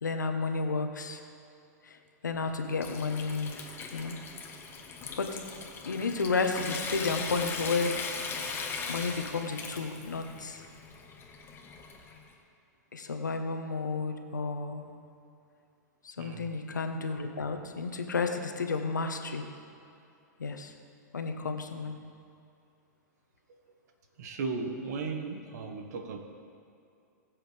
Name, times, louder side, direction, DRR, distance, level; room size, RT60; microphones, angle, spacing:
voice 1, 0.0-1.2 1.8-3.6 3.9-4.1 5.2-5.4 5.8-8.0 8.9-10.6 12.9-14.9 16.0-19.5 20.4-20.7 21.1-22.0, left 4 dB, 85° left, 5 dB, 1.1 m, -32 dB
Water tap faucet / Sink (filling or washing) / Trickle dribble, 2.3-12.3, left 4 dB, 25° left, 1.4 m, -39 dB
voice 2, 16.2-16.5 24.2-26.2, right 4 dB, 60° right, 4 dB, 1.5 m, -36 dB
19.5 x 7.7 x 3.4 m, 2.6 s
hypercardioid pair, 110°, 10 cm